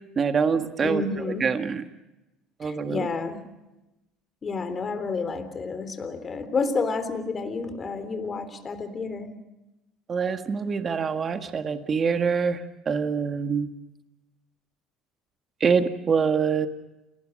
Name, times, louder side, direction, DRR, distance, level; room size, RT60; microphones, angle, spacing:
voice 1, 0.2-1.0 1.4-1.8 2.6-3.1 10.1-12.6 12.9-13.7 15.6-16.7, right 6 dB, 35° right, 8 dB, 1.7 m, -25 dB
voice 2, 0.8-1.5 2.6-3.4 4.4-9.3, left 4 dB, 30° left, 10 dB, 3.4 m, -30 dB
28.5 x 19.5 x 6.4 m, 0.99 s
supercardioid pair, 95°, 0 cm